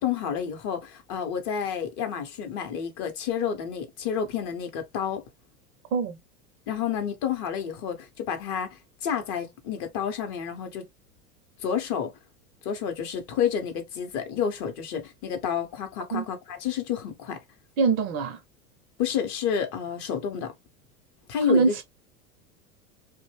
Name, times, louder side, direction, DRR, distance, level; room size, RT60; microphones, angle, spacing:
voice 1, 0.0-5.2 6.7-10.9 11.6-12.1 12.6-17.4 19.0-20.5 21.3-21.7, left 8 dB, 35° left, 0.7 m, -30 dB
voice 2, 17.8-18.4 21.5-21.8, right 4 dB, 35° right, 0.5 m, -23 dB
2.6 x 2.0 x 3.1 m
figure-of-eight pair, 80°, 45 cm